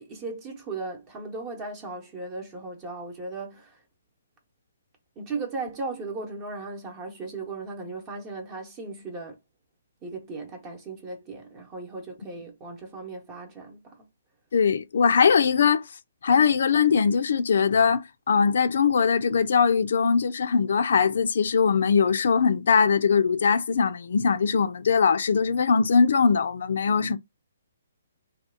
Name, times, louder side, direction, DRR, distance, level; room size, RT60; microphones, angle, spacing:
voice 1, 0.0-3.8 5.2-9.4 10.0-14.0, right 3 dB, 25° right, 0.9 m, -37 dB
voice 2, 14.5-15.9 16.2-18.0 18.3-27.2, left 6 dB, 65° left, 0.5 m, -21 dB
2.9 x 2.3 x 3.5 m
hypercardioid pair, 140°, 0 cm